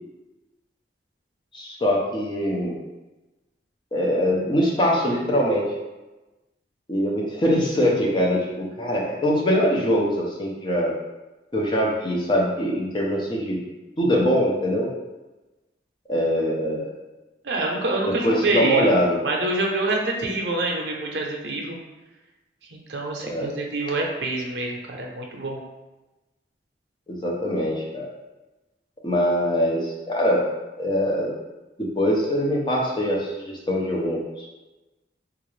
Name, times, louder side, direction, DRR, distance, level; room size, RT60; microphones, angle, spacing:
voice 1, 1.5-2.7 3.9-5.7 6.9-10.9 11.5-13.6 14.0-14.9 16.1-16.9 18.2-19.2 23.2-23.5 27.1-28.1 29.0-30.4 30.8-31.3 31.8-34.5, equal, 25° left, -3 dB, 0.6 m, -23 dB
voice 2, 17.4-18.9 19.2-21.8 22.7-25.6, right 2 dB, 75° right, 0 dB, 0.6 m, -26 dB
3.5 x 2.4 x 3.1 m, 1.1 s
head